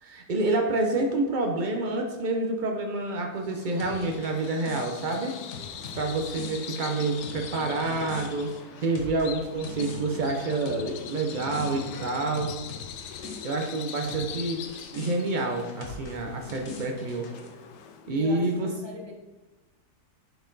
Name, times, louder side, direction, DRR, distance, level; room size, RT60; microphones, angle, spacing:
voice 1, 0.0-5.4 5.9-8.5 8.8-12.6 13.4-17.3 18.1-18.7, right 2 dB, 85° right, 2 dB, 0.4 m, -28 dB
Bird vocalization bird call bird song, 3.4-18.2, left 8 dB, 90° left, 1.2 m, -42 dB
sound 1, 3.8-14.4 14.6-17.5, left 4 dB, 60° left, 1.3 m, -44 dB
voice 2, 5.7-6.2 18.1-19.1, left 1 dB, 15° right, -3 dB, 1.3 m, -42 dB
Animal, 7.6-8.7 9.4-10.5 11.3-12.3, right 1 dB, 40° right, 0.8 m, -42 dB
6.7 x 4.3 x 3.9 m, 1.1 s
omnidirectional pair, 1.8 m